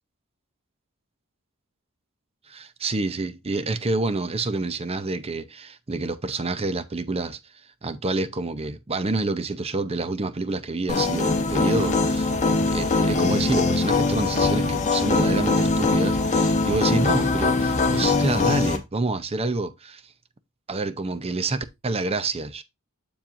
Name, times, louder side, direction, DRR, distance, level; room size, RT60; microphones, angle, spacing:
voice 1, 2.5-7.4 7.8-12.3 12.7-20.0 20.7-22.6, right 2 dB, 25° right, 0.6 m, -28 dB
sound 1, 10.9-18.8, left 3 dB, 35° left, 1.1 m, -22 dB
7.3 x 7.2 x 2.5 m
head